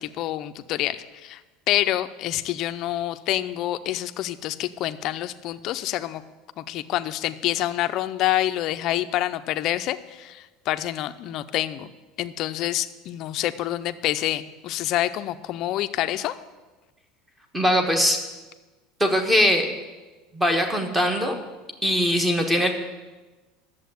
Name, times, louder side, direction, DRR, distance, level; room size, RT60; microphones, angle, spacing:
voice 1, 0.0-1.4 1.7-6.2 6.6-11.9 12.2-16.3, left 14 dB, 40° left, 10 dB, 0.6 m, -27 dB
voice 2, 17.5-18.2 19.0-19.7 20.3-21.3 21.8-22.7, equal, 10° right, 5 dB, 1.3 m, -21 dB
11.5 x 7.4 x 9.3 m, 1.2 s
cardioid pair, 165°, 0 cm